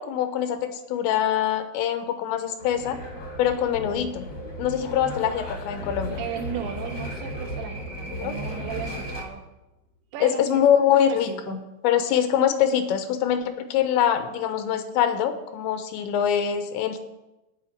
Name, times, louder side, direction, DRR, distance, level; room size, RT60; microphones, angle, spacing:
voice 1, 0.0-3.0 3.4-4.3 4.6-6.2 8.1-8.3 10.2-11.6 11.8-17.0, left 9 dB, 85° left, 9 dB, 3.2 m, -24 dB
sound 1, 2.6-9.2, equal, 40° left, 1.5 m, -35 dB
sound 2, 5.8-9.7, equal, 50° right, 3.7 m, -42 dB
voice 2, 6.2-9.4 10.1-11.6, right 7 dB, 90° right, 4 dB, 3.7 m, -36 dB
13.5 x 5.2 x 9.2 m, 0.99 s
omnidirectional pair, 5.1 m